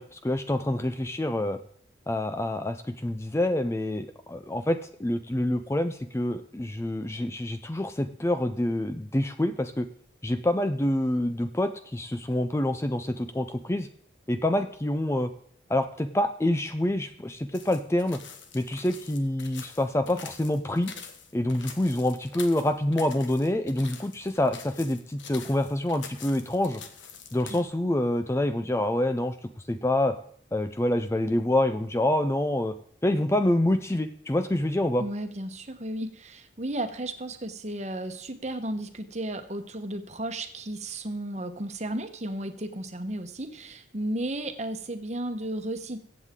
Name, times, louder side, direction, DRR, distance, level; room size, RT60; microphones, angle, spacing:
voice 1, 0.0-1.6 2.1-2.8 3.0-9.9 10.2-13.9 14.3-15.3 15.7-18.2 18.5-20.9 21.3-26.8 27.3-29.3 29.7-30.2 30.5-32.7 33.0-35.0, left 1 dB, 15° left, 9 dB, 0.4 m, -26 dB
sound 1, 17.5-27.6, left 6 dB, 85° left, 1.4 m, -45 dB
voice 2, 35.0-46.0, right 1 dB, 35° right, 8 dB, 1.1 m, -34 dB
22.5 x 8.1 x 3.7 m, 0.63 s
head